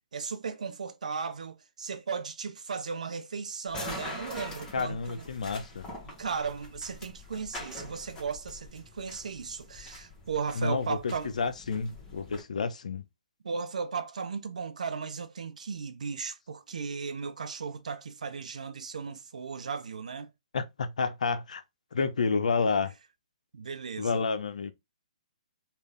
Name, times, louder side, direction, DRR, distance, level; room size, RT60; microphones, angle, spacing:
voice 1, 0.1-5.2 6.2-11.3 13.4-20.3 23.5-24.3, right 5 dB, 70° right, 0.6 m, -36 dB
sound 1, 3.7-12.4, left 1 dB, 15° left, 1.3 m, -44 dB
voice 2, 4.7-5.9 10.6-13.0 20.5-21.6 21.9-22.9 24.0-24.7, left 4 dB, 70° left, 0.5 m, -30 dB
3.3 x 2.4 x 3.4 m
figure-of-eight pair, 130°, 4 cm